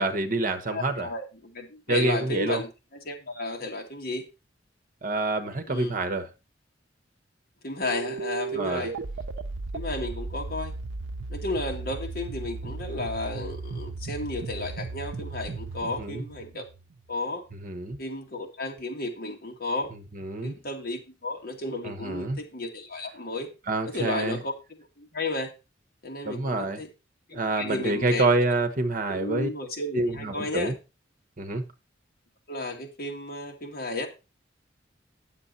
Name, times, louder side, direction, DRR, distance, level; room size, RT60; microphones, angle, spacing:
voice 1, 0.0-1.1 1.9-2.6 5.0-6.3 8.6-8.9 16.0-16.2 17.6-18.0 20.1-20.5 21.8-22.4 23.7-24.4 26.2-26.8 27.3-29.5 29.9-30.7 31.4-31.6, right 2 dB, 45° right, 1.1 m, -27 dB
voice 2, 0.7-4.2 5.7-5.9 7.6-8.9 9.7-10.7 11.3-16.6 17.1-17.4 18.0-19.9 20.4-23.5 23.8-24.5 24.8-25.5 26.0-26.9 27.3-28.3 29.1-30.7 32.5-34.1, left 2 dB, 50° left, 2.1 m, -33 dB
sound 1, 7.8-17.2, right 3 dB, 75° right, 0.6 m, -36 dB
9.6 x 7.4 x 4.1 m
head